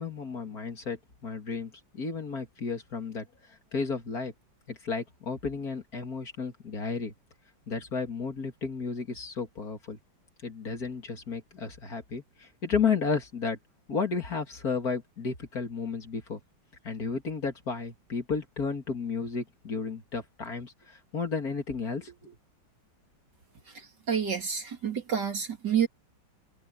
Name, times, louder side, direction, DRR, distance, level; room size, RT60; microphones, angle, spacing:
voice 1, 0.0-4.3 4.7-7.1 7.7-10.0 10.4-13.6 13.9-16.4 16.8-22.3, left 5 dB, 50° left, 2.8 m, -33 dB
voice 2, 23.7-25.9, right 7 dB, 60° right, 3.6 m, -29 dB
omnidirectional pair, 2.1 m